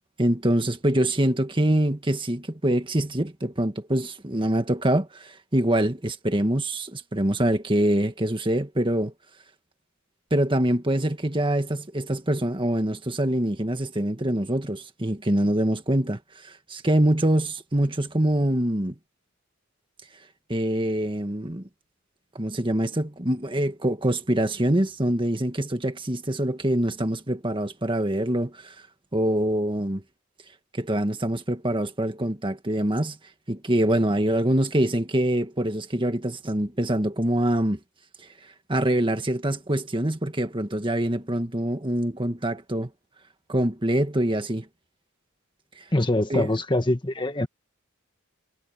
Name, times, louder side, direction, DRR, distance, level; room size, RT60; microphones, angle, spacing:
voice 1, 0.2-9.1 10.3-19.0 20.5-21.7 22.4-28.8 29.1-30.0 30.7-33.2 33.5-37.8 38.7-42.9 43.5-44.7 45.8-45.9 46.3-46.5, right 1 dB, 25° right, 1.7 m, -24 dB
voice 2, 45.9-47.5, left 1 dB, 20° left, 1.6 m, -24 dB
head